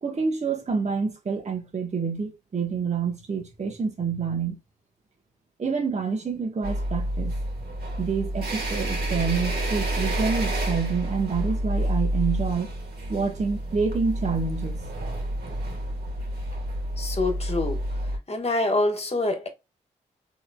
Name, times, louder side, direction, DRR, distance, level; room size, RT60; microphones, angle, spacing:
voice 1, 0.0-4.6 5.6-7.4 8.0-12.7 13.1-14.8, right 5 dB, 40° right, 1.0 m, -27 dB
sound 1, 6.6-18.2, right 1 dB, 65° right, 1.5 m, -29 dB
voice 2, 17.0-17.8 18.3-19.5, left 2 dB, 35° left, 1.3 m, -25 dB
3.7 x 2.9 x 2.3 m
supercardioid pair, 40°, 18 cm